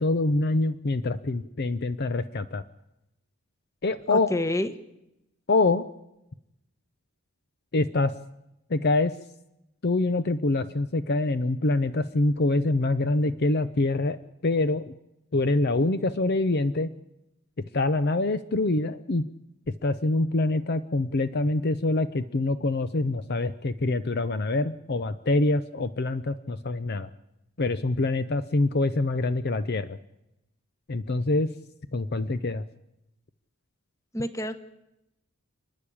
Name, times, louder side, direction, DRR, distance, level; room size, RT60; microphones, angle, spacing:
voice 1, 0.0-2.6 3.8-4.4 5.5-5.8 7.7-8.1 8.7-9.1 9.8-14.2 14.4-14.9 15.3-16.9 17.6-19.2 19.7-27.1 27.6-30.0 30.9-31.5 31.9-32.6, left 2 dB, 45° left, 12 dB, 0.6 m, -25 dB
voice 2, 4.1-4.7 34.1-34.6, left 1 dB, 15° left, 11 dB, 1.0 m, -28 dB
30.0 x 10.5 x 8.5 m, 0.88 s
head